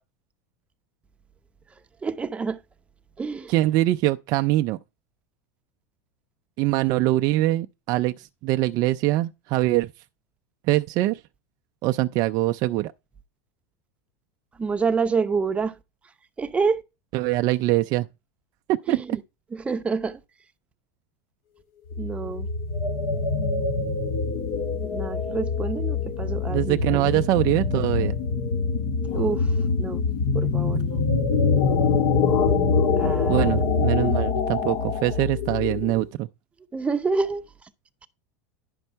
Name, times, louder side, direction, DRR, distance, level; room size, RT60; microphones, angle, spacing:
voice 1, 2.0-2.6 3.2-3.5 14.6-15.7 16.4-16.8 18.9-19.2 19.5-20.2 22.0-22.5 24.8-27.0 29.1-29.4 29.8-30.0 30.3-31.1 32.9-33.6 36.7-37.4, right 5 dB, 15° right, 0.8 m, -27 dB
voice 2, 3.5-4.8 6.6-9.9 10.7-11.2 11.8-12.9 17.1-18.1 18.7-19.2 26.5-28.1 33.3-36.3, right 16 dB, 45° right, 0.4 m, -23 dB
sound 1, 21.9-36.0, left 4 dB, 60° left, 2.5 m, -24 dB
11.0 x 5.3 x 4.5 m
supercardioid pair, 130°, 9 cm